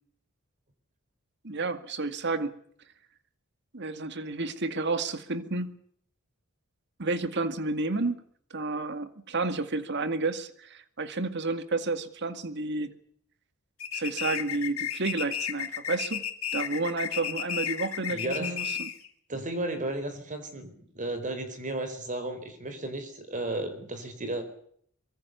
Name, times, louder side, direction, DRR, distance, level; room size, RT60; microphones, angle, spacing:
voice 1, 1.4-2.6 3.7-5.7 7.0-8.2 8.5-12.9 13.9-16.2 16.5-18.9, right 3 dB, 55° right, 10 dB, 2.1 m, -31 dB
sound 1, 13.8-19.1, left 9 dB, 80° left, 3.0 m, -33 dB
voice 2, 18.1-18.6 19.3-24.5, right 2 dB, 40° right, 9 dB, 4.7 m, -34 dB
24.5 x 23.0 x 7.0 m, 0.64 s
head